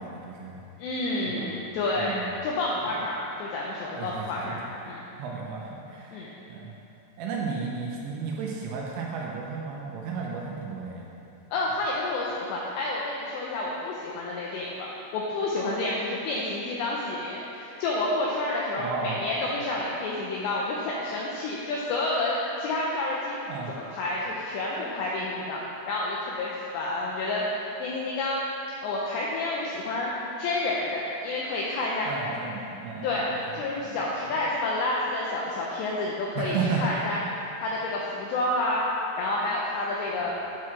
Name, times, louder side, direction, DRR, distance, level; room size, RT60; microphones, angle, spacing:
voice 1, 0.0-0.6 1.2-1.5 2.0-2.3 4.0-4.6 5.2-6.7 7.2-11.1 18.7-19.2 23.5-23.7 32.1-33.2 33.8-34.0 36.4-36.8 40.2-40.3, right 5 dB, 80° right, -2 dB, 2.7 m, -34 dB
voice 2, 0.8-5.0 6.1-6.3 11.5-25.6 25.9-27.5 27.8-28.4 28.8-30.1 30.4-32.1 33.0-37.2 37.6-38.8 39.2-40.3, left 2 dB, 90° left, -4 dB, 2.5 m, -29 dB
8.5 x 4.6 x 5.8 m, 2.8 s
omnidirectional pair, 5.8 m